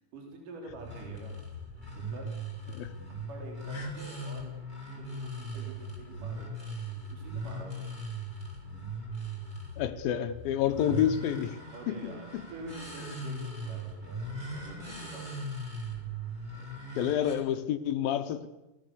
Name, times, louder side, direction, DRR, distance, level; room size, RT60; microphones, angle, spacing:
voice 1, 0.1-1.4 2.1-2.3 3.3-4.5 5.0-8.0 10.6-10.8 11.7-15.4 16.5-16.7, right 2 dB, 50° right, 1 dB, 5.1 m, -47 dB
sound 1, 0.7-17.4, right 1 dB, 10° right, 5.4 m, -39 dB
voice 2, 9.8-11.6 11.9-12.0 17.0-18.5, left 10 dB, 70° left, 8 dB, 2.4 m, -29 dB
28.0 x 18.0 x 6.9 m, 1.0 s
omnidirectional pair, 5.0 m